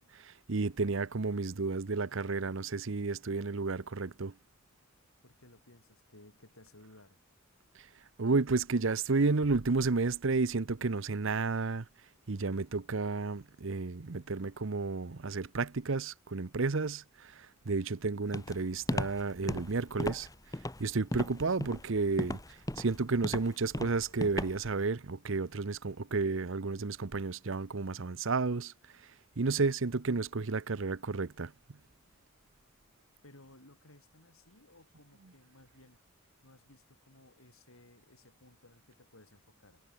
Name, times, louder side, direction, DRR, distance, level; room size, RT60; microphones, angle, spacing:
voice 1, 0.0-4.3 8.2-11.8 12.3-20.3 20.8-22.4 22.8-28.7 29.4-31.5, right 3 dB, 65° right, 0.8 m, -32 dB
voice 2, 5.2-7.4 33.2-36.0 36.4-39.8, left 1 dB, 90° left, 7.3 m, -59 dB
Walk footsteps, 18.3-24.8, left 1 dB, 15° left, 1.4 m, -36 dB
head